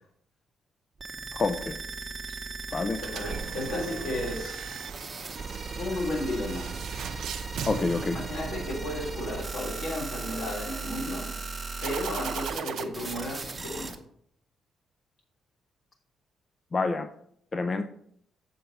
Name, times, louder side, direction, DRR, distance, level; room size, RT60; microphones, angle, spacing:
sound 1, 1.0-14.0, right 3 dB, 25° right, 0.9 m, -37 dB
voice 1, 1.3-1.8 2.7-3.0 7.7-8.2 16.7-17.1 17.5-17.8, left 3 dB, 35° left, 8 dB, 0.4 m, -27 dB
sound 2, 2.9-9.1 11.8-12.8, right 8 dB, 75° right, 0.5 m, -39 dB
voice 2, 3.0-4.6 5.8-6.7 8.1-11.3 11.8-14.0, left 1 dB, 75° left, -2 dB, 3.3 m, -34 dB
sound 3, 3.2-11.2, right 5 dB, 50° right, 0.9 m, -46 dB
6.8 x 4.5 x 5.2 m, 0.67 s
cardioid pair, 90°, 0 cm